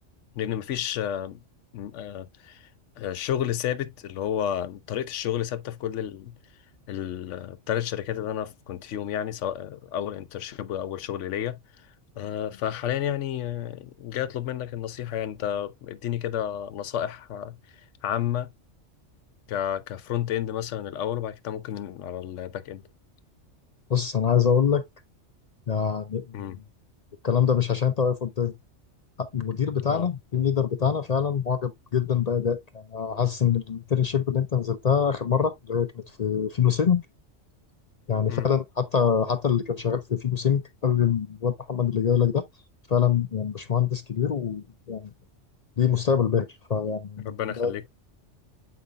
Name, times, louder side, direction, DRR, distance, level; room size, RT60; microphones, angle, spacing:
voice 1, 0.3-1.4 1.7-2.7 3.0-6.4 6.9-11.6 12.2-17.6 18.0-18.5 19.5-22.8 26.3-26.6 29.9-30.1 38.3-38.5 47.2-47.9, left 10 dB, 80° left, 1.0 m, -31 dB
voice 2, 23.9-24.8 25.7-26.6 27.2-28.5 29.2-37.0 38.1-42.4 42.9-45.1 45.8-47.7, left 7 dB, 50° left, 0.5 m, -24 dB
8.0 x 5.3 x 2.2 m
omnidirectional pair, 1.2 m